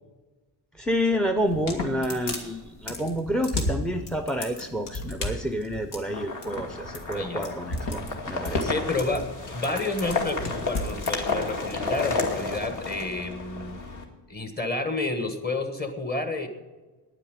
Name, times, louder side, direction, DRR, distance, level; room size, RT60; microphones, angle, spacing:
voice 1, 0.8-8.0 8.3-8.7, equal, ahead, 8 dB, 0.5 m, -29 dB
sound 1, 1.4-11.1, left 2 dB, 85° left, 2.5 m, -32 dB
sound 2, 6.0-14.0, left 3 dB, 45° left, 2.2 m, -32 dB
voice 2, 7.1-7.6 8.7-9.3 9.5-13.8 14.3-16.5, left 2 dB, 25° left, 7 dB, 1.5 m, -30 dB
9.9 x 9.8 x 9.2 m, 1.2 s
cardioid pair, 155°, 41 cm